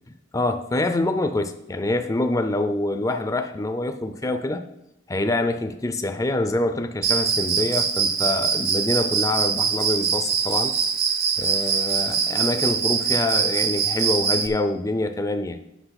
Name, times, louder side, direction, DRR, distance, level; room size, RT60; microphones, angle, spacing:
voice 1, 0.3-4.6 5.1-10.8 11.4-15.6, left 2 dB, 20° left, 7 dB, 0.4 m, -25 dB
Cricket, 7.0-14.5, right 6 dB, 55° right, 0.9 m, -23 dB
8.0 x 6.1 x 5.8 m, 0.84 s
head